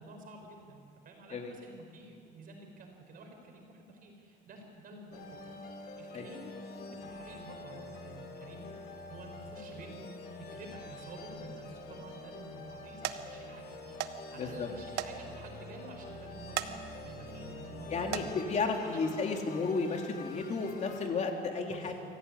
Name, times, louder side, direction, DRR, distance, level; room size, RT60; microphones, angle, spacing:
voice 1, 0.0-5.3 5.7-8.8 9.1-16.7 17.0-18.2 18.8-19.0 21.7-21.9, right 2 dB, 55° right, 2 dB, 5.3 m, -50 dB
sound 1, 5.1-21.1, left 2 dB, 70° left, 3.1 m, -46 dB
sound 2, 11.6-12.0 12.6-12.8 13.0-13.2 14.0-14.2 14.5-14.6 15.0-15.1 15.5-15.6 16.4-16.7 17.2-17.5 18.0-18.3 19.2-19.4 19.9-20.0, right 13 dB, 85° right, 1.2 m, -36 dB
voice 2, 14.4-14.7 17.9-21.9, left 4 dB, 45° left, 2 dB, 3.3 m, -33 dB
24.5 x 15.5 x 9.8 m, 2.4 s
cardioid pair, 110°, 17 cm